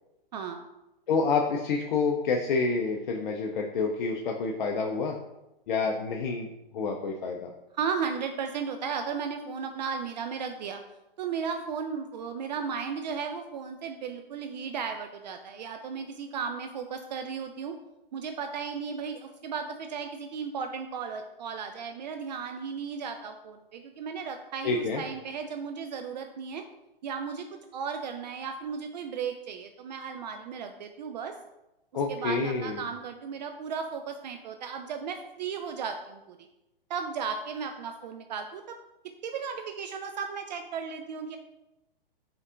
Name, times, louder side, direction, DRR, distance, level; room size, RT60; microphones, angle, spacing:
voice 1, 0.3-0.6 7.7-10.8 11.2-17.7 18.1-26.6 27.0-27.5 27.7-31.3 32.1-36.4 36.9-38.8 39.2-41.4, right 6 dB, 50° right, 6 dB, 0.4 m, -35 dB
voice 2, 1.1-5.2 5.7-6.5 6.7-7.5 24.6-25.0 31.9-32.8, left 4 dB, 55° left, 2 dB, 0.5 m, -28 dB
5.3 x 3.6 x 2.4 m, 0.94 s
hypercardioid pair, 120°, 29 cm